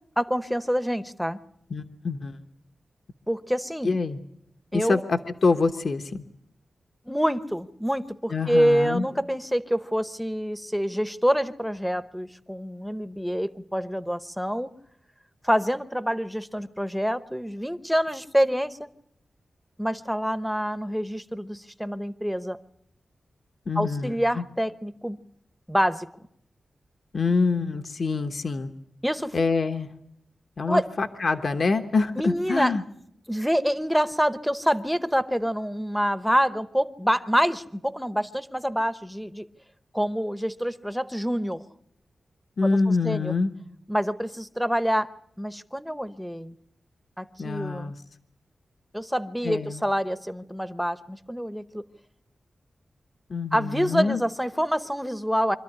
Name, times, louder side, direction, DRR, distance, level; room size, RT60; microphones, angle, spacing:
voice 1, 0.2-1.4 3.3-3.9 4.7-5.0 7.1-14.7 15.4-18.8 19.8-22.6 23.8-25.2 25.7-26.1 29.0-29.4 30.7-30.9 32.2-32.7 33.3-39.5 39.9-41.6 42.6-43.3 43.9-45.1 45.4-46.5 47.2-47.9 48.9-51.8 53.5-55.6, equal, ahead, 12 dB, 0.8 m, -26 dB
voice 2, 1.7-2.4 3.8-4.2 4.7-6.3 8.3-9.0 23.7-24.4 27.1-28.7 29.3-29.9 30.6-32.8 42.6-43.5 47.4-48.0 49.4-49.8 53.3-54.2, left 4 dB, 50° left, 7 dB, 1.0 m, -25 dB
25.5 x 13.5 x 9.8 m, 0.76 s
wide cardioid pair, 145°, 0 cm